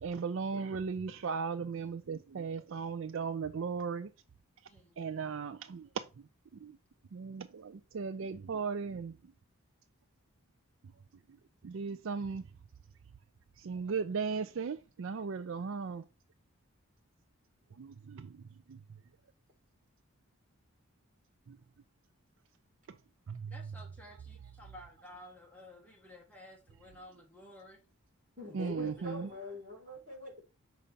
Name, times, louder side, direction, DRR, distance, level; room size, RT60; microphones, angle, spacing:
voice 1, 0.0-4.1 5.0-6.0 6.6-6.7 7.1-9.2 11.6-12.4 13.6-16.0 17.8-18.3 18.7-18.8 21.5-21.6 23.3-23.5 28.5-29.3, right 5 dB, 60° right, 0.4 m, -37 dB
voice 2, 4.6-5.3 23.5-27.8, left 1 dB, 5° left, 1.7 m, -54 dB
voice 3, 28.4-30.4, left 2 dB, 35° right, 3.7 m, -43 dB
6.5 x 5.2 x 4.1 m
head